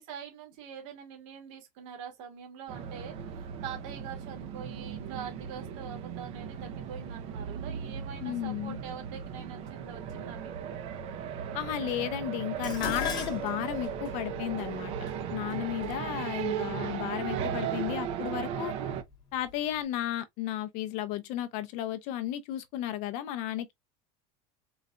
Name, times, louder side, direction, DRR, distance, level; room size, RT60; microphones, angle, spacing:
voice 1, 0.0-10.7, right 7 dB, 65° right, 1.2 m, -44 dB
sound 1, 2.7-19.0, right 8 dB, 35° right, 0.4 m, -37 dB
voice 2, 8.2-8.8 11.5-14.9 15.3-18.7 19.3-23.7, left 12 dB, 45° left, 0.5 m, -34 dB
Dishes pots and pans, 12.6-17.0 17.9-18.3 18.7-19.5 19.8-19.9, left 7 dB, 25° left, 0.9 m, -39 dB
3.9 x 2.2 x 2.3 m
cardioid pair, 175°, 17 cm